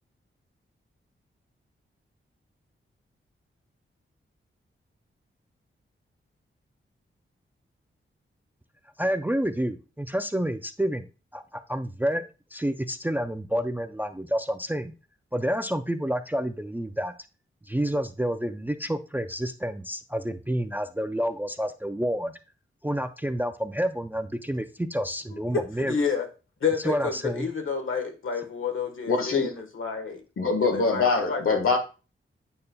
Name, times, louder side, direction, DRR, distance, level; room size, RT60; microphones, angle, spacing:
voice 1, 9.0-11.1 11.3-12.2 12.5-14.9 15.3-17.1 17.7-22.3 22.8-26.0 26.8-27.5, equal, 10° right, 0.3 m, -29 dB
voice 2, 25.9-26.3 26.6-30.2 30.6-31.6, left 6 dB, 70° left, 1.3 m, -30 dB
voice 3, 29.1-29.5 30.4-31.8, left 4 dB, 90° left, 1.5 m, -23 dB
8.6 x 5.4 x 2.2 m
wide cardioid pair, 160°, 21 cm